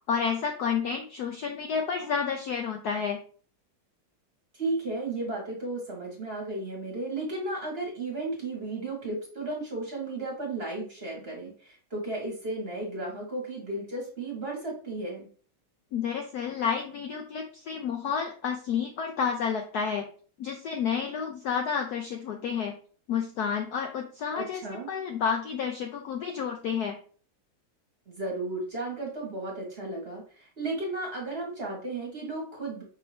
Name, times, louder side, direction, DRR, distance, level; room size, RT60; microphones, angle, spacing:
voice 1, 0.0-3.2 15.9-20.1 20.4-22.8 23.1-27.0, left 6 dB, 85° left, 3 dB, 0.8 m, -30 dB
voice 2, 4.5-15.3 24.3-24.9 28.1-32.8, right 2 dB, 35° right, -2 dB, 1.3 m, -34 dB
5.4 x 2.8 x 3.2 m, 0.42 s
omnidirectional pair, 2.3 m